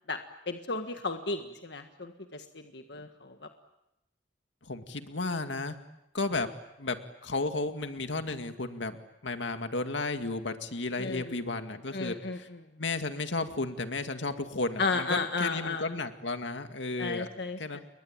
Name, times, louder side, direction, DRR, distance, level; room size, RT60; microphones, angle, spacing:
voice 1, 0.5-2.4 2.7-3.3 11.0-11.2 11.9-12.4 14.8-15.8 17.0-17.8, left 3 dB, 65° left, 6 dB, 1.7 m, -33 dB
voice 2, 4.6-5.8 6.1-6.5 6.8-9.0 9.2-12.5 12.8-17.3 17.6-17.8, left 3 dB, 85° left, 7 dB, 2.2 m, -33 dB
30.0 x 22.5 x 8.9 m, 0.90 s
head